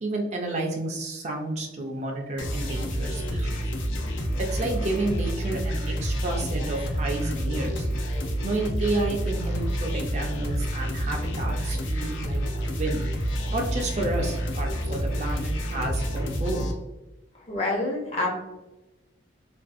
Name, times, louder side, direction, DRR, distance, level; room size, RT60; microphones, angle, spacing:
voice 1, 0.0-3.6 4.4-7.9 8.4-13.0 13.5-16.7, right 2 dB, 35° right, 1 dB, 0.4 m, -31 dB
sound 1, 2.4-16.7, equal, 80° left, 0.5 m, -28 dB
voice 2, 17.5-18.3, left 2 dB, 35° left, -2 dB, 0.6 m, -27 dB
2.5 x 2.3 x 2.4 m, 1.0 s
head